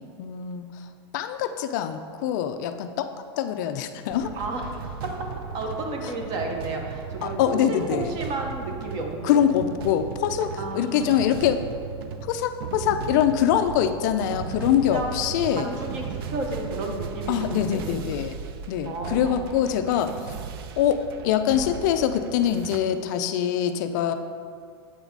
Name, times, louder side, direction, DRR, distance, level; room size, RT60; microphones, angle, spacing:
voice 1, 0.2-0.7 1.1-3.1 3.4-4.3 7.2-8.1 9.2-11.6 12.3-15.7 17.3-18.4 18.7-20.3 20.8-24.1, left 9 dB, 40° left, 9 dB, 0.3 m, -24 dB
sound 1, 4.1-22.8, right 6 dB, 55° right, 0.4 m, -36 dB
voice 2, 4.4-5.3 5.5-9.4 10.6-11.2 14.8-15.1 15.5-18.1 18.8-19.5, right 2 dB, 25° right, 2 dB, 0.7 m, -32 dB
8.0 x 4.0 x 4.6 m, 2.2 s
supercardioid pair, 175°, 15 cm